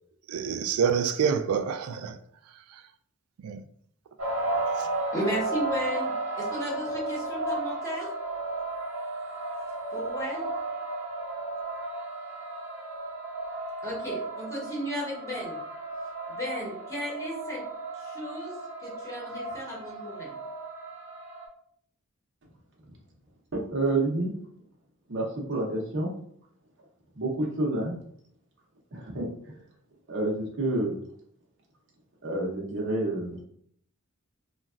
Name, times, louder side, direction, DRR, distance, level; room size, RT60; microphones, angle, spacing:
voice 1, 0.3-2.2 3.4-3.6 4.8-4.9, right 7 dB, 90° right, 0.3 m, -27 dB
sound 1, 4.2-21.5, right 2 dB, 75° right, 1.2 m, -34 dB
voice 2, 5.1-6.1 6.4-8.1 9.9-10.5 13.8-15.6 16.3-17.6 18.0-20.3, equal, 15° left, 1.1 m, -34 dB
voice 3, 23.5-24.3 25.1-26.1 27.1-27.9 28.9-29.6 30.1-31.0 32.2-33.4, right 2 dB, 60° right, 0.8 m, -29 dB
3.2 x 2.3 x 2.4 m
head